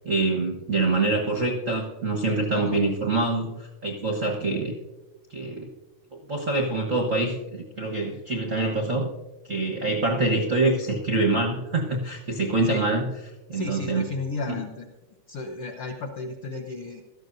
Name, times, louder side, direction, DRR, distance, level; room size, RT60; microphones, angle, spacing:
voice 1, 0.0-4.8 5.3-5.7 6.3-9.1 9.5-13.1 13.5-14.1 14.5-14.6, right 2 dB, 75° right, 0 dB, 0.7 m, -25 dB
voice 2, 13.5-14.9 15.3-17.0, left 3 dB, 70° left, 1 dB, 1.3 m, -33 dB
17.5 x 13.5 x 2.7 m, 1.1 s
omnidirectional pair, 3.6 m